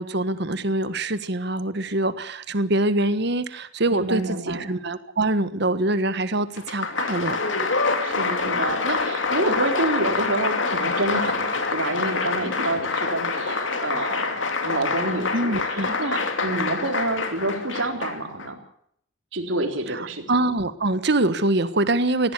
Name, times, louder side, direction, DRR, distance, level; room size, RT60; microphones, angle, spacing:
voice 1, 0.0-7.5 15.3-15.9 19.9-22.3, right 2 dB, 60° right, 12 dB, 1.5 m, -24 dB
voice 2, 3.9-4.7 8.0-18.6 19.3-20.3, right 2 dB, 90° right, 4 dB, 3.8 m, -28 dB
Applause, 6.6-18.5, left 4 dB, 80° left, 2.8 m, -26 dB
19.0 x 16.5 x 8.4 m, 0.66 s
head